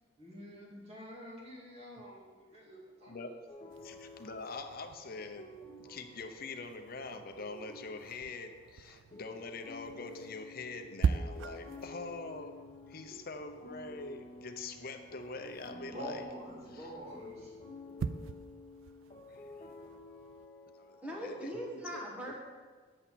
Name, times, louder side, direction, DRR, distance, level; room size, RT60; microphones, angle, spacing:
voice 1, 0.2-3.2 15.7-17.5, equal, 30° right, -6 dB, 2.5 m, -47 dB
sound 1, 3.5-21.7, left 2 dB, 25° left, 1.3 m, -51 dB
sound 2, 3.7-20.5, right 5 dB, 75° right, 0.4 m, -42 dB
voice 2, 3.8-5.5 5.8-16.2 16.7-16.9 17.6-17.7 19.3-19.4 21.2-22.0, left 3 dB, 50° left, 6 dB, 0.7 m, -44 dB
voice 3, 21.0-22.4, equal, 5° right, -3 dB, 1.3 m, -40 dB
8.9 x 7.7 x 4.2 m, 1.5 s
head